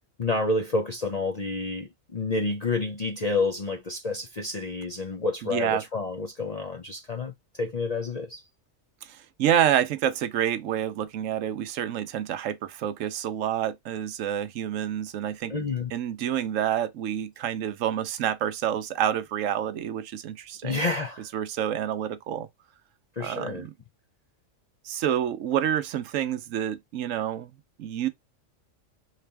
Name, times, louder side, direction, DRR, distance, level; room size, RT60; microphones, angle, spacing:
voice 1, 0.2-8.4 15.5-15.9 20.6-21.3 23.2-23.7, left 3 dB, 50° left, 0.5 m, -29 dB
voice 2, 5.4-5.8 9.0-15.5 15.9-20.8 21.3-22.5 23.2-23.7 24.8-27.5 27.8-28.1, right 10 dB, 80° right, 1.0 m, -28 dB
4.0 x 3.3 x 3.3 m
omnidirectional pair, 1.4 m